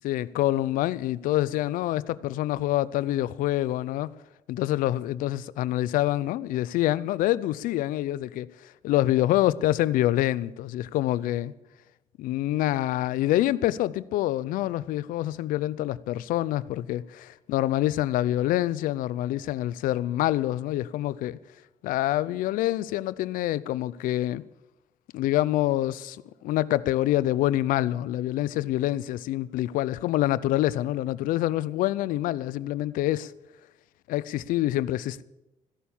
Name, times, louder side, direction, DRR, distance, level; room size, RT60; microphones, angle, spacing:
voice 1, 0.0-4.1 4.5-11.5 12.2-21.4 21.8-24.4 25.1-33.3 34.1-35.2, left 14 dB, 85° left, 0.5 m, -26 dB
15.0 x 11.0 x 7.1 m
supercardioid pair, 55°, 14 cm